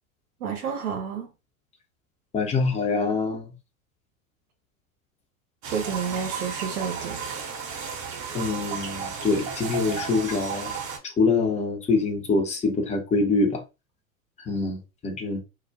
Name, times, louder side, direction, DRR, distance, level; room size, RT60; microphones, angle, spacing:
voice 1, 0.4-1.3 5.7-7.2, right 6 dB, 85° right, 0.7 m, -30 dB
voice 2, 2.3-3.5 8.3-10.7 11.0-13.6 14.4-15.4, left 3 dB, 15° left, 0.6 m, -25 dB
sound 1, 5.6-11.0, right 6 dB, 40° right, 0.8 m, -34 dB
2.2 x 2.1 x 2.6 m
hypercardioid pair, 90°, 43 cm